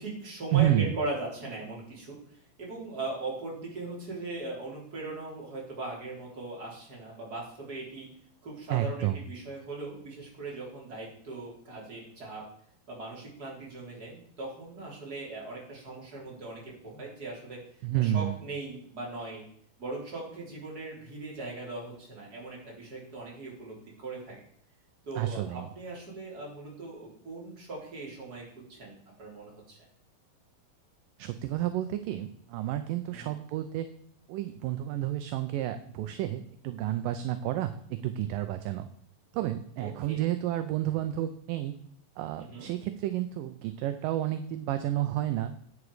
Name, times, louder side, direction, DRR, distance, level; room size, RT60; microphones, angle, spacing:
voice 1, 0.0-8.1 8.4-12.4 12.9-17.6 18.0-19.4 19.8-24.4 25.0-28.4 28.7-28.9 29.2-29.8 33.1-33.3 39.8-40.3 42.4-42.7, right 2 dB, 25° right, -3 dB, 3.9 m, -39 dB
voice 2, 0.5-0.9 8.7-9.2 17.8-18.4 25.2-25.7 31.2-33.9 34.3-38.9 39.3-41.8 42.2-45.5, right 13 dB, 80° right, 9 dB, 2.2 m, -30 dB
11.0 x 8.3 x 4.9 m, 0.63 s
omnidirectional pair, 4.2 m